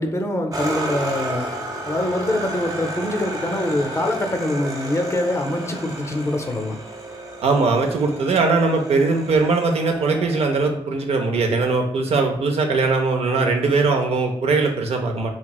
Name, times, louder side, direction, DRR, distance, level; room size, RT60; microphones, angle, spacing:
voice 1, 0.0-1.5 1.9-6.8, left 1 dB, 25° left, 4 dB, 0.5 m, -24 dB
sound 1, 0.5-10.5, right 1 dB, 35° right, 0.7 m, -32 dB
voice 2, 7.4-15.3, right 3 dB, 90° right, 3 dB, 0.5 m, -20 dB
3.0 x 2.7 x 2.3 m, 0.76 s
cardioid pair, 70°, 10 cm